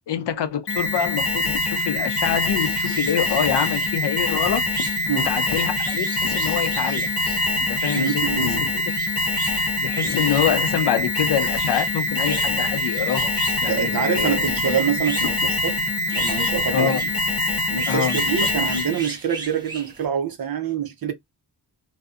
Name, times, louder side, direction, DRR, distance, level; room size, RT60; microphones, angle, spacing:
voice 1, 0.1-4.6 5.3-7.1 7.7-8.7 9.5-13.3 13.6-14.7 16.7-17.0 17.9-18.2, left 9 dB, 75° left, 0.6 m, -25 dB
Alarm, 0.7-19.1, left 2 dB, 35° left, 0.7 m, -24 dB
sound 1, 2.2-20.0, right 2 dB, 10° right, 0.9 m, -38 dB
voice 2, 7.9-8.7 13.6-15.8 16.1-17.0 17.7-21.1, right 7 dB, 55° right, 0.6 m, -25 dB
2.6 x 2.1 x 2.4 m
wide cardioid pair, 150°, 41 cm